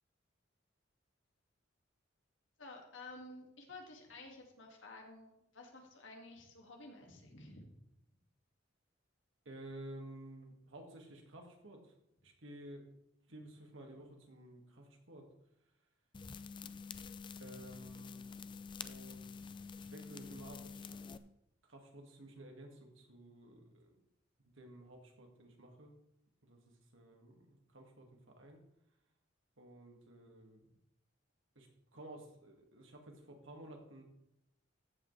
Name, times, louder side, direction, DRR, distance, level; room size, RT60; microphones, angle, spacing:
voice 1, 2.6-7.8, left 2 dB, 75° left, 1 dB, 2.1 m, -52 dB
voice 2, 9.5-11.9 12.2-12.8 13.3-15.3 16.6-16.7 17.4-18.4 18.8-19.3 19.8-21.0 21.6-24.0 24.4-26.0 26.4-28.6 29.6-30.8 31.6-34.0, right 1 dB, 90° right, 2 dB, 2.0 m, -53 dB
sound 1, 16.1-21.2, left 5 dB, 25° left, 0.4 m, -48 dB
14.0 x 8.1 x 3.3 m, 0.82 s
head